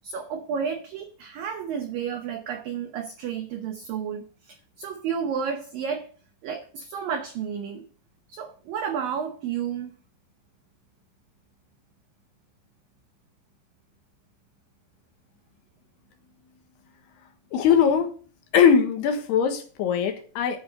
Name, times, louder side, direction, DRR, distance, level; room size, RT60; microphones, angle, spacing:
voice 1, 0.0-6.1 6.4-7.9 8.3-9.9, right 7 dB, 80° right, 5 dB, 2.0 m, -31 dB
voice 2, 17.5-18.1 18.5-20.6, left 7 dB, 70° left, 6 dB, 3.1 m, -20 dB
10.0 x 5.3 x 8.3 m, 0.40 s
omnidirectional pair, 5.3 m